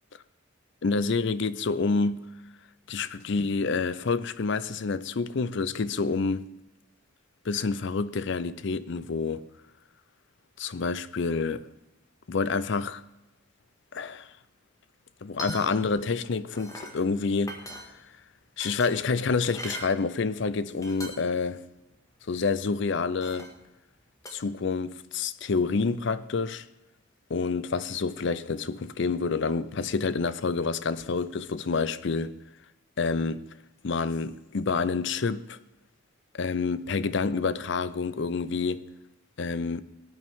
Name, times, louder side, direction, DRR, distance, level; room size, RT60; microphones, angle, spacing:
voice 1, 0.8-2.3 2.9-6.5 7.4-9.4 10.6-11.6 12.3-13.0 13.9-14.3 15.2-17.6 18.6-21.6 22.3-23.5 24.3-26.7 27.3-32.3 33.0-33.4 33.8-35.6 36.3-38.9 39.4-39.8, left 4 dB, 60° left, 0.5 m, -28 dB
sound 1, 15.3-16.0 16.3-17.0 17.4-18.2 18.6-19.9 20.5-20.6 20.8-21.4 21.8-21.9 23.2-23.6 24.3-24.4, equal, 15° left, 1.8 m, -40 dB
18.0 x 9.2 x 3.6 m
head